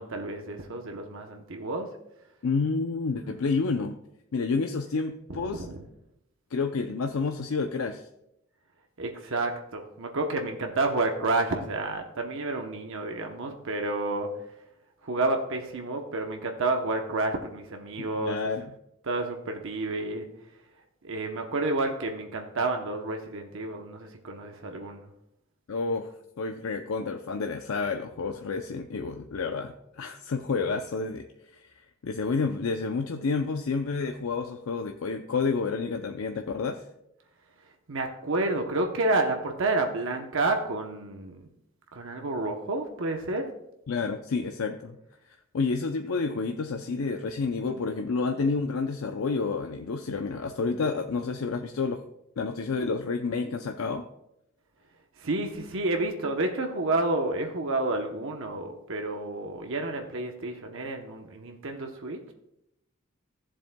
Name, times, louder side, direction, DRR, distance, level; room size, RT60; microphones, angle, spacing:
voice 1, 0.0-1.9 5.3-5.8 9.0-14.3 15.0-18.4 19.0-20.3 21.0-25.1 37.9-41.5 41.9-43.5 55.2-62.3, right 2 dB, 65° right, 4 dB, 0.8 m, -30 dB
voice 2, 2.4-4.0 4.3-5.7 6.5-8.1 18.0-18.7 25.7-26.1 26.4-31.3 31.5-31.7 32.0-36.8 43.9-45.0 45.2-52.0 52.4-54.0, left 4 dB, 75° left, 5 dB, 0.5 m, -29 dB
14.5 x 7.4 x 2.2 m, 0.81 s
head